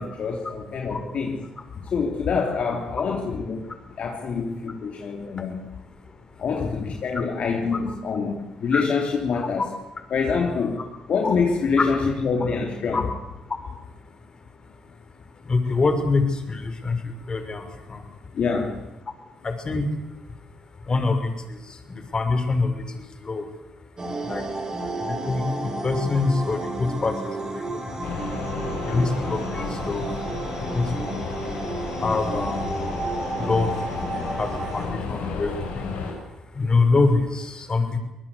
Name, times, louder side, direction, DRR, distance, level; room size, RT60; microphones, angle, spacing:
voice 1, 0.0-1.5 1.8-3.7 4.0-5.7 6.4-9.7 10.1-10.8 11.1-13.1 18.3-18.9, left 5 dB, 60° left, 1 dB, 3.2 m, -26 dB
voice 2, 4.9-5.4 6.0-6.7 8.7-8.8 11.2-11.3 11.8-11.9 12.9-13.0 13.4-14.1 14.3-18.4 19.1-19.2 19.4-24.5 24.7-28.3 28.7-38.0, left 3 dB, 35° left, 7 dB, 5.8 m, -27 dB
sound 1, 24.0-34.9, right 2 dB, 30° right, 7.9 m, -31 dB
sound 2, 28.0-36.1, left 4 dB, 85° left, 6.6 m, -32 dB
25.0 x 20.0 x 8.4 m, 0.96 s
supercardioid pair, 65°, 2 cm